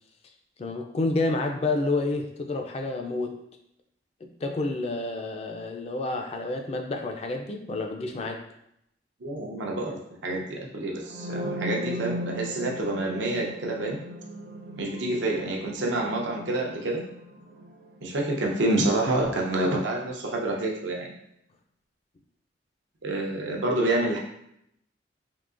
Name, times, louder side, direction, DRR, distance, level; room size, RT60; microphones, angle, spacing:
voice 1, 0.6-3.4 4.2-8.4, left 2 dB, 35° left, 3 dB, 0.3 m, -29 dB
voice 2, 9.2-14.0 14.8-17.1 18.0-21.1 23.0-24.2, right 2 dB, 85° right, -1 dB, 0.7 m, -28 dB
sound 1, 11.0-18.9, equal, 60° right, 0.3 m, -38 dB
3.7 x 2.8 x 2.4 m, 0.76 s
head